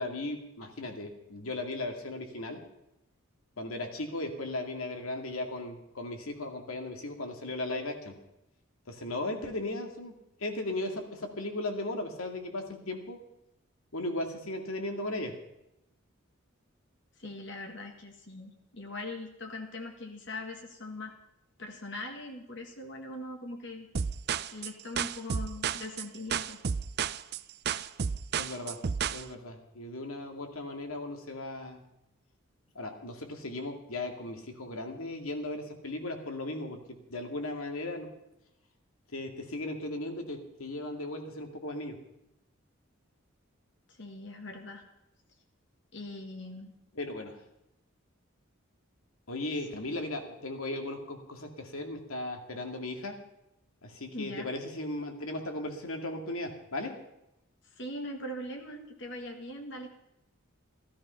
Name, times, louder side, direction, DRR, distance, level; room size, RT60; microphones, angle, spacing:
voice 1, 0.0-2.6 3.6-8.1 8.9-10.1 10.4-13.2 13.9-15.3 28.4-28.8 29.1-31.8 32.7-38.1 39.1-41.9 46.9-47.4 49.3-53.2 53.8-56.9, left 2 dB, 85° left, 4 dB, 2.3 m, -37 dB
voice 2, 17.2-21.1 21.6-23.9 24.5-26.6 43.9-44.8 45.9-46.7 49.7-49.8 54.1-54.5 57.7-59.9, left 1 dB, 55° left, 3 dB, 1.7 m, -41 dB
sound 1, 23.9-29.2, right 7 dB, 50° right, 0.5 m, -32 dB
14.5 x 13.0 x 5.7 m, 0.86 s
head